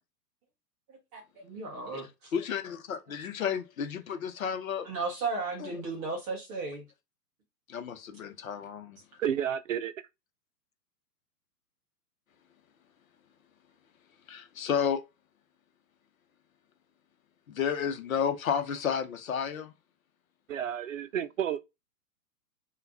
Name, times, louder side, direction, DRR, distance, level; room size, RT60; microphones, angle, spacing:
voice 1, 1.1-2.3 4.8-6.9, right 3 dB, 10° right, 0.5 m, -35 dB
voice 2, 2.3-4.9 5.6-5.7 7.7-9.0 14.3-15.0 17.5-19.7, left 7 dB, 55° left, 1.0 m, -32 dB
voice 3, 9.2-9.9 20.5-21.6, right 9 dB, 50° right, 0.6 m, -31 dB
5.7 x 2.5 x 3.4 m
figure-of-eight pair, 115°, 49 cm